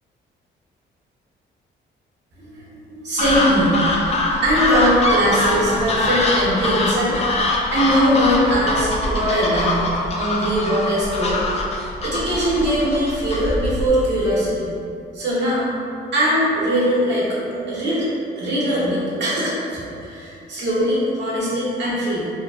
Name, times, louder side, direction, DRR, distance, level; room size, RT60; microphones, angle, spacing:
voice 1, 2.5-3.8 4.4-7.2 7.7-9.8 10.1-11.4 12.0-14.7 15.1-15.7 16.1-17.3 17.5-18.1 18.4-22.3, equal, 60° right, -8 dB, 0.9 m, -21 dB
sound 1, 3.2-13.9, left 2 dB, 35° left, 0.4 m, -23 dB
2.7 x 2.3 x 2.3 m, 2.5 s
cardioid pair, 90°, 20 cm